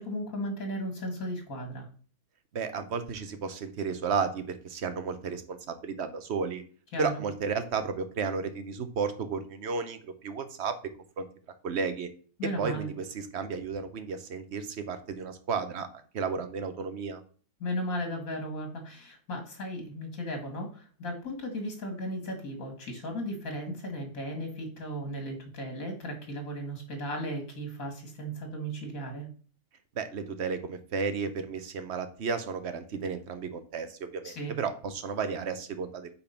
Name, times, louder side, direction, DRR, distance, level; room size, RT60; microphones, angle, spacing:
voice 1, 0.0-1.9 6.9-7.2 12.4-12.9 17.6-29.3 34.2-34.5, equal, 65° left, 4 dB, 2.7 m, -36 dB
voice 2, 2.5-6.6 7.0-10.8 11.2-11.3 11.6-12.1 12.4-15.9 16.1-17.2 29.9-36.1, right 5 dB, 50° right, 9 dB, 1.2 m, -33 dB
8.7 x 4.3 x 5.8 m, 0.42 s
omnidirectional pair, 1.6 m